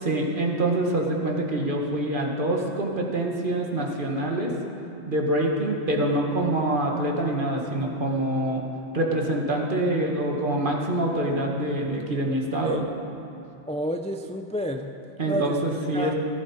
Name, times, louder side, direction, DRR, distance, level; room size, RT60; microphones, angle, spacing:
voice 1, 0.0-4.5 5.1-8.6 8.9-12.9 15.2-16.1, right 1 dB, 50° right, 0 dB, 1.7 m, -25 dB
voice 2, 13.7-14.9 15.3-15.6 15.9-16.1, equal, 10° left, 5 dB, 0.3 m, -30 dB
16.0 x 15.0 x 4.4 m, 2.8 s
omnidirectional pair, 1.1 m